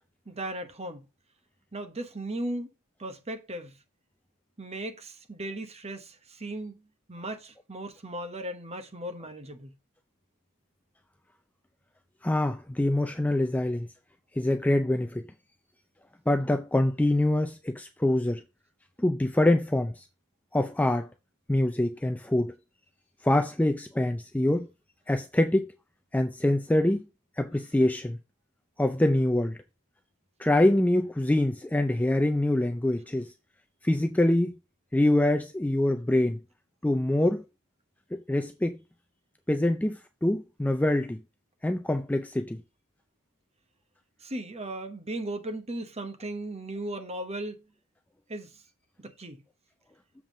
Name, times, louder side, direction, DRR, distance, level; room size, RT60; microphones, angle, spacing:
voice 1, 0.3-1.1 1.7-2.7 3.0-3.8 4.6-9.7 44.2-47.7 48.3-48.6 49.0-49.4, right 1 dB, 30° right, 1.0 m, -37 dB
voice 2, 12.2-13.9 14.4-15.2 16.3-18.4 19.0-20.0 20.5-21.1 21.5-22.5 23.2-24.7 25.1-25.7 26.1-27.1 27.4-28.2 28.8-29.6 30.4-33.3 33.8-34.6 34.9-36.4 36.8-37.4 38.1-38.8 39.5-41.2 41.6-42.6, left 1 dB, 5° left, 0.4 m, -25 dB
7.2 x 3.6 x 6.1 m
head